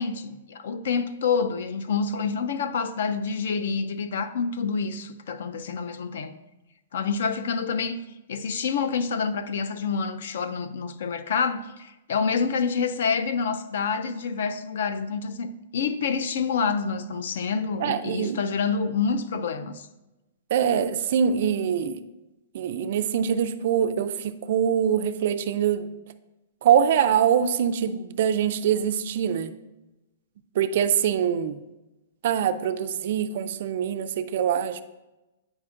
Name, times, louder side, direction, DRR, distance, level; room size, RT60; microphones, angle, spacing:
voice 1, 0.0-6.3 6.9-8.0 8.3-19.9, left 5 dB, 55° left, 0.4 m, -27 dB
voice 2, 17.8-18.4 20.5-22.0 22.5-25.9 26.6-29.5 30.6-31.6 32.2-34.8, right 8 dB, 45° right, 0.3 m, -24 dB
8.7 x 5.0 x 2.4 m
hypercardioid pair, 175°, 0 cm